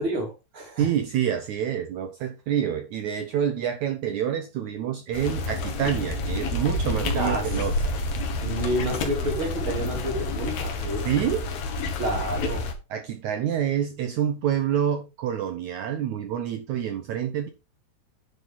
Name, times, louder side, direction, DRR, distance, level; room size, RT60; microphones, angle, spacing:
voice 1, 0.0-0.9 7.0-7.5 8.4-11.0 12.0-12.7, right 1 dB, 30° right, 3.8 m, -29 dB
voice 2, 0.8-7.7 11.0-11.5 12.9-17.5, right 9 dB, 80° right, 1.7 m, -27 dB
sound 1, 5.1-12.7, left 2 dB, 65° left, 3.2 m, -29 dB
10.5 x 6.9 x 3.9 m
omnidirectional pair, 4.7 m